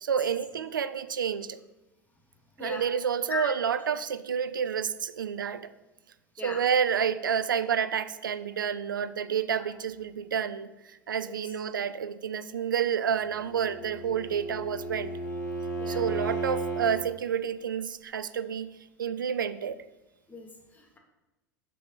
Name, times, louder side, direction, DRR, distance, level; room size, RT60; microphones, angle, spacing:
voice 1, 0.0-1.6 2.6-5.7 6.4-15.1 15.9-19.8, right 7 dB, 80° right, 14 dB, 0.4 m, -29 dB
Bowed string instrument, 13.3-17.0, right 3 dB, 75° left, 1.8 m, -34 dB
voice 2, 20.3-21.0, left 3 dB, 15° left, 1 dB, 1.7 m, -37 dB
7.3 x 5.9 x 4.0 m, 1.0 s
figure-of-eight pair, 90°, 11 cm